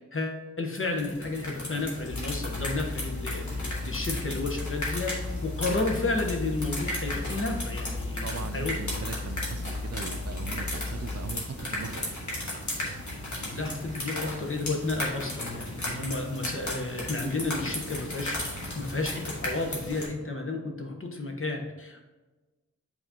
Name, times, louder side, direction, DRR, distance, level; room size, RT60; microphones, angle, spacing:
voice 1, 0.1-5.1 5.4-8.2 8.5-8.8 13.4-22.1, left 3 dB, 45° left, 2 dB, 1.2 m, -32 dB
sound 1, 0.7-20.1, left 1 dB, 70° left, 1.7 m, -35 dB
sound 2, 2.1-11.4, left 3 dB, 15° left, 0.3 m, -36 dB
voice 2, 8.2-12.1, right 6 dB, 55° right, 9 dB, 0.5 m, -39 dB
8.0 x 4.2 x 2.9 m, 1.2 s
cardioid pair, 45°, 30 cm